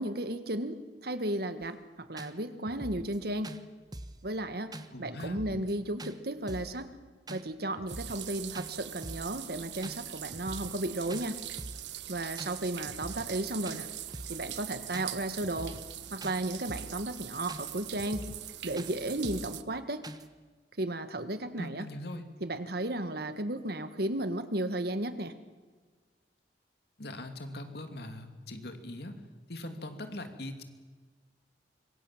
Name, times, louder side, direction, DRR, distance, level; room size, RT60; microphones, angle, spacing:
voice 1, 0.0-3.5 4.2-4.7 5.0-6.9 7.3-11.4 12.1-13.9 14.3-15.8 16.1-18.3 18.6-20.1 20.8-21.9 22.4-25.3, right 1 dB, 65° right, 10 dB, 1.7 m, -34 dB
sound 1, 1.6-1.7 2.2-2.3 2.6-3.2 3.4-3.6 3.9-4.2 4.7-4.9 5.2-5.7 6.0-6.1 6.5-6.8 7.3-7.4 7.7-8.3 8.5-8.7 9.0-9.3 9.8-10.0 10.3-10.8 11.1-11.2 11.6-11.9 12.4-12.5 12.9-13.4 13.6-13.8 14.1-14.4 14.9-15.1 15.4-15.9 16.2-16.4 16.7-17.0 17.5-17.6 18.0-18.5 18.8-18.9 19.2-19.5 20.0-20.2, right 1 dB, 25° right, 1.2 m, -43 dB
voice 2, 4.9-5.4 21.6-22.3 27.0-29.1 29.5-30.6, left 1 dB, 65° left, 6 dB, 2.6 m, -41 dB
sound 2, 7.9-19.6, right 12 dB, 85° right, 1.1 m, -42 dB
25.5 x 23.5 x 7.4 m, 1.4 s
head